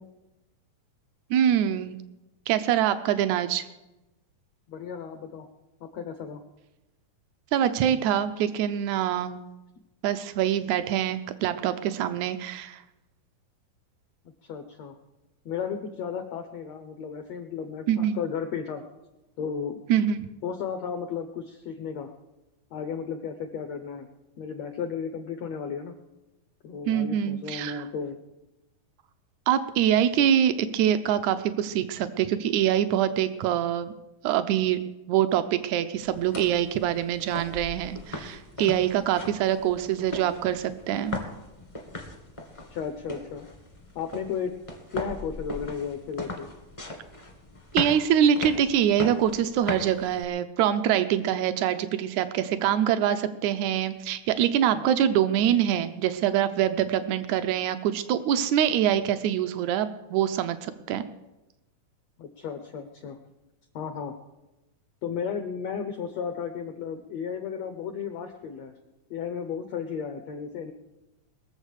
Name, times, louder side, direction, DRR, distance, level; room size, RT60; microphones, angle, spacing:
voice 1, 1.3-2.0 2.5-3.7 7.5-9.4 10.0-12.8 17.9-18.2 19.9-20.3 26.9-27.8 29.5-33.9 34.2-34.8 35.1-41.2 47.7-61.0, right 10 dB, 90° right, 10 dB, 1.6 m, -24 dB
voice 2, 4.7-5.5 5.8-6.4 14.4-14.9 15.4-18.8 19.4-19.8 20.4-22.1 22.7-24.1 24.4-25.9 26.6-28.2 42.7-43.5 43.9-44.5 44.9-46.5 54.7-54.8 62.2-63.2 63.7-64.1 65.0-68.8 69.1-70.7, left 6 dB, 80° left, 7 dB, 1.5 m, -34 dB
sound 1, 36.0-50.2, left 1 dB, 30° left, 0.5 m, -38 dB
21.5 x 7.3 x 6.5 m, 0.98 s
omnidirectional pair, 4.2 m